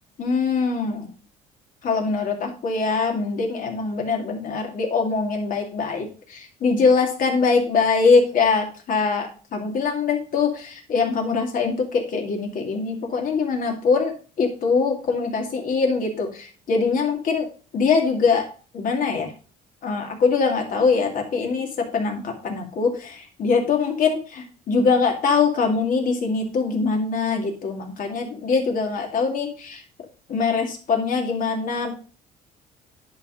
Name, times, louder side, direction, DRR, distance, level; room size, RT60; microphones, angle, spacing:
voice 1, 0.2-1.1 1.8-17.5 17.7-18.4 18.7-19.3 19.8-29.8 30.3-31.9, left 4 dB, 55° left, 2 dB, 2.3 m, -23 dB
10.5 x 3.8 x 5.0 m, 0.37 s
cardioid pair, 110°, 17 cm